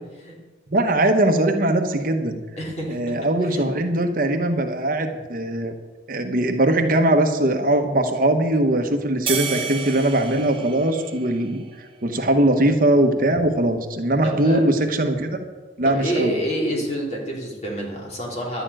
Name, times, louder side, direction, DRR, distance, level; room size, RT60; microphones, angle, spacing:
voice 1, 0.7-2.4 2.9-5.7 6.1-11.6 12.0-15.4 15.8-16.3, right 1 dB, 50° right, 5 dB, 1.0 m, -20 dB
voice 2, 2.6-3.1 3.5-3.7 14.2-14.6 15.8-18.6, equal, 35° left, -3 dB, 3.3 m, -27 dB
sound 1, 9.3-11.9, right 6 dB, 30° right, 1.5 m, -31 dB
11.5 x 6.9 x 8.9 m, 1.2 s
head